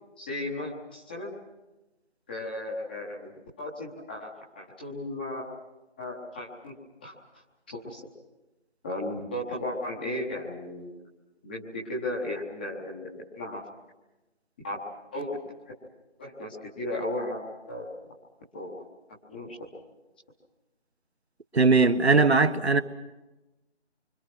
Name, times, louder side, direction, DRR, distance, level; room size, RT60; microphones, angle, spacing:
voice 1, 0.2-1.3 2.3-4.3 4.6-5.5 6.0-6.7 7.0-7.1 7.7-8.0 8.8-11.0 11.4-13.6 14.6-14.8 15.1-15.3 16.2-17.9 18.5-18.9 19.3-19.6, left 1 dB, 10° left, 1.2 m, -35 dB
voice 2, 21.5-22.8, right 3 dB, 65° right, 1.5 m, -20 dB
27.5 x 25.0 x 6.1 m
figure-of-eight pair, 160°, 35 cm